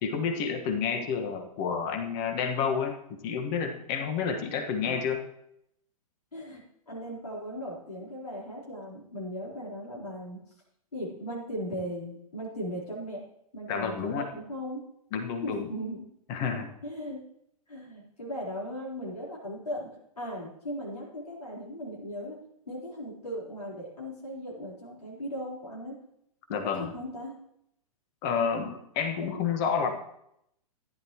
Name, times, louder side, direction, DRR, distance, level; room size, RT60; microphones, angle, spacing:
voice 1, 0.0-3.0 3.2-5.2 13.7-14.3 15.1-15.7 16.3-16.7 26.5-26.9 28.2-29.9, left 6 dB, 35° left, 6 dB, 1.6 m, -29 dB
voice 2, 6.9-10.4 10.9-13.2 13.5-14.8 15.4-16.0 16.8-17.2 17.7-19.9 20.2-22.4 22.7-25.9 26.5-27.3 29.2-29.4 29.8-29.9, equal, 80° left, -6 dB, 4.0 m, -38 dB
14.5 x 10.5 x 3.1 m, 0.76 s
figure-of-eight pair, 110°, 19 cm